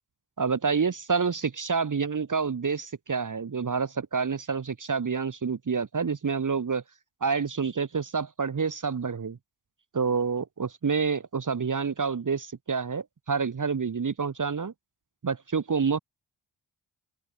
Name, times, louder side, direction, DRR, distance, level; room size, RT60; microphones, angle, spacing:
voice 1, 0.4-6.8 7.2-9.4 9.9-14.7 15.2-16.0, right 5 dB, 40° right, 1.2 m, -28 dB
open air
cardioid pair, 45°, 49 cm